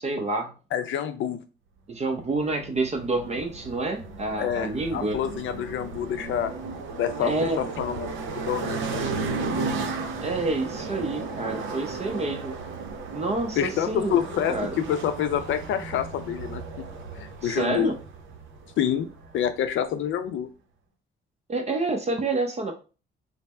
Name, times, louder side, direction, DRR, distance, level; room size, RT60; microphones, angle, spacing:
voice 1, 0.0-0.5 1.9-5.2 7.2-7.6 10.2-12.6 13.1-14.2 14.5-14.7 17.4-17.9 21.5-22.7, right 2 dB, 35° right, 3 dB, 0.6 m, -28 dB
voice 2, 0.7-1.4 4.4-6.5 7.0-9.5 13.6-16.8 17.2-17.9 18.8-19.1 19.3-20.5, left 9 dB, 75° left, 10 dB, 0.5 m, -28 dB
sound 1, 2.3-19.8, right 4 dB, 80° right, 0.6 m, -35 dB
3.3 x 2.0 x 4.2 m, 0.34 s
cardioid pair, 90°, 20 cm